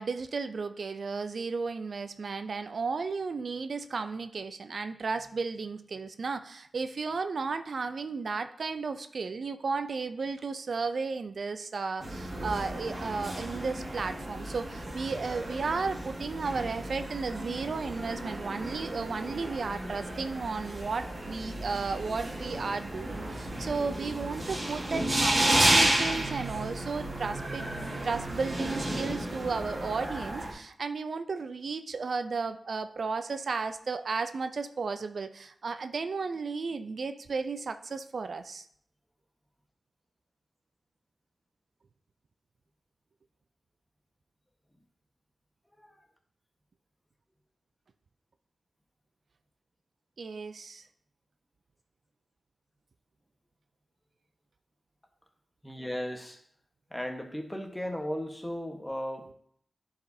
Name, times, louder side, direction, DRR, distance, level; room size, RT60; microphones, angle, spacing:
voice 1, 0.0-38.6 50.2-50.8, right 4 dB, 70° right, 10 dB, 0.4 m, -34 dB
sound 1, 12.0-30.5, right 1 dB, 45° right, 1.9 m, -32 dB
voice 2, 55.6-56.4 56.9-59.3, equal, 10° left, 4 dB, 1.2 m, -36 dB
10.5 x 4.8 x 2.7 m, 0.65 s
cardioid pair, 55°, 0 cm